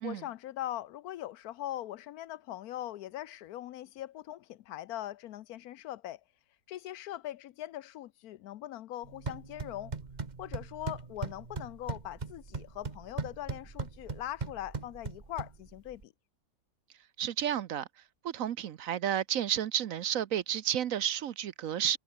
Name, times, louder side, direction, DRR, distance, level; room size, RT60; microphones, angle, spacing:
voice 1, 0.0-6.2 6.7-9.9 10.4-16.1, left 13 dB, 75° left, 1.1 m, -41 dB
sound 1, 9.0-16.0, right 4 dB, 30° right, 1.4 m, -40 dB
voice 2, 17.2-17.9 18.2-22.0, right 10 dB, 65° right, 1.1 m, -31 dB
omnidirectional pair, 1.7 m